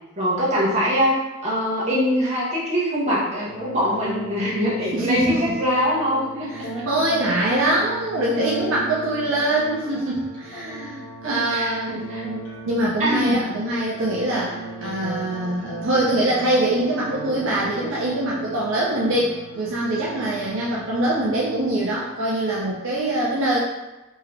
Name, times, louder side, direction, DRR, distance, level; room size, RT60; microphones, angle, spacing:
voice 1, 0.2-6.8 7.3-7.4 11.2-12.2 13.0-13.5, equal, 30° right, -7 dB, 1.0 m, -23 dB
sound 1, 3.4-22.4, right 2 dB, 55° left, 1.1 m, -37 dB
voice 2, 4.9-5.6 6.5-23.6, right 1 dB, 60° right, -6 dB, 0.6 m, -23 dB
3.6 x 2.9 x 3.3 m, 1.1 s
head